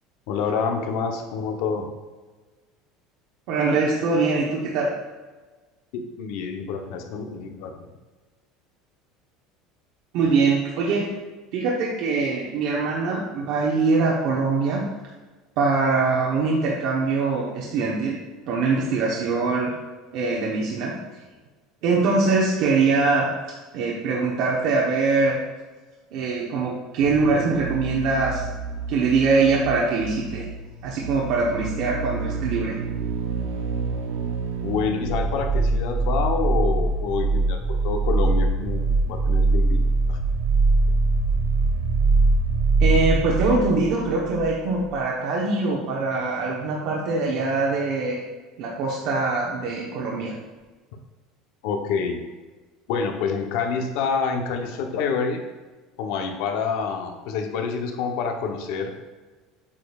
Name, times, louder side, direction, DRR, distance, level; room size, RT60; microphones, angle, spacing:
voice 1, 0.3-1.9 5.9-7.9 34.6-39.8 40.1-40.2 51.6-52.2 52.9-55.4 56.0-58.9, left 5 dB, 65° left, 4 dB, 0.9 m, -27 dB
voice 2, 3.5-4.9 10.1-11.1 11.5-14.8 15.6-18.2 18.5-19.7 20.1-20.9 21.8-25.3 26.1-28.5 28.9-30.5 30.8-32.8 42.8-48.2 48.6-50.3, right 4 dB, 55° right, -3 dB, 1.0 m, -23 dB
sound 1, 27.0-44.5 44.8-44.9, right 3 dB, 80° right, 0.6 m, -24 dB
8.3 x 5.1 x 2.4 m, 1.3 s
cardioid pair, 160°, 0 cm